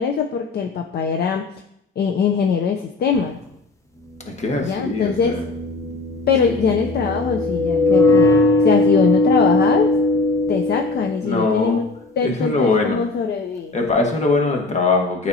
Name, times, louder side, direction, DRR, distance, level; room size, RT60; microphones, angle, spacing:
voice 1, 0.0-1.5 2.0-3.4 4.6-5.4 6.3-9.9 10.5-11.8 12.2-13.7, left 6 dB, 55° left, 5 dB, 0.5 m, -22 dB
sound 1, 3.2-3.3 4.8-11.6, left 2 dB, 15° left, 0.8 m, -19 dB
voice 2, 4.2-5.5 11.2-11.8 12.2-13.0 13.7-15.3, left 3 dB, 35° left, 2 dB, 1.3 m, -21 dB
8.6 x 4.3 x 2.7 m, 0.76 s
cardioid pair, 90°, 20 cm